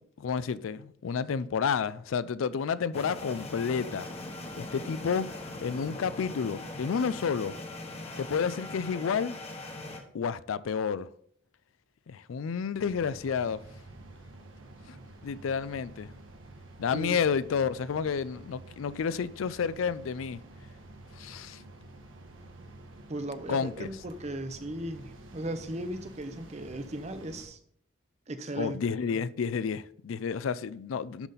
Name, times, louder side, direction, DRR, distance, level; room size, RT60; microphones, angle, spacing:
voice 1, 0.2-4.1 4.6-5.3 5.6-7.5 8.2-9.4 10.1-11.1 12.1-13.6 14.9-15.0 15.2-16.1 16.8-20.4 21.1-21.6 23.5-23.9 28.6-31.3, left 6 dB, 80° left, 0.4 m, -30 dB
sound 1, 2.9-10.0, left 2 dB, 30° left, 1.2 m, -41 dB
sound 2, 12.8-27.4, right 2 dB, 75° right, 1.4 m, -50 dB
voice 2, 16.9-17.2 23.1-27.6 28.3-29.2, right 1 dB, 35° right, 0.7 m, -37 dB
11.5 x 4.1 x 4.0 m
head